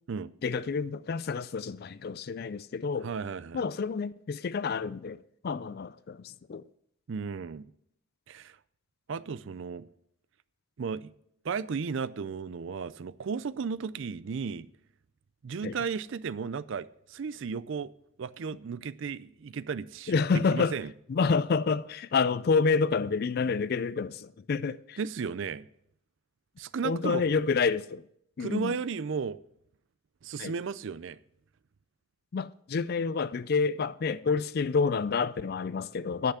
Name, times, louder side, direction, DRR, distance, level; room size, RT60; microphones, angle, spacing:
voice 1, 0.4-3.1 3.5-6.6 15.6-15.8 20.1-20.8 21.1-25.0 26.8-28.1 28.4-28.8 30.4-30.5 32.3-36.3, left 5 dB, 45° left, 0.3 m, -28 dB
voice 2, 3.0-3.6 7.1-7.7 8.3-8.6 9.1-9.9 10.8-11.1 11.4-14.7 15.4-17.9 18.2-20.2 20.5-20.9 25.0-25.6 26.6-27.2 28.4-29.4 30.2-31.2, right 5 dB, 60° right, 0.4 m, -34 dB
10.0 x 5.7 x 7.3 m
head